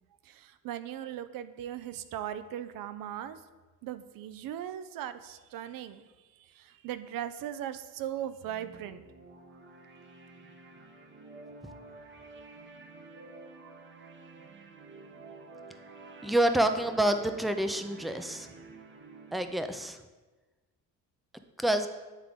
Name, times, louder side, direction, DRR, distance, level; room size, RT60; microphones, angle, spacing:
voice 1, 0.2-3.4 3.8-9.0, right 11 dB, 75° right, 12 dB, 0.5 m, -39 dB
sound 1, 8.4-19.4, right 3 dB, 35° right, 0.8 m, -50 dB
voice 2, 16.2-18.5 19.3-20.0 21.6-21.9, right 1 dB, ahead, 8 dB, 0.4 m, -27 dB
9.4 x 3.7 x 3.6 m, 1.2 s
cardioid pair, 95°, 35 cm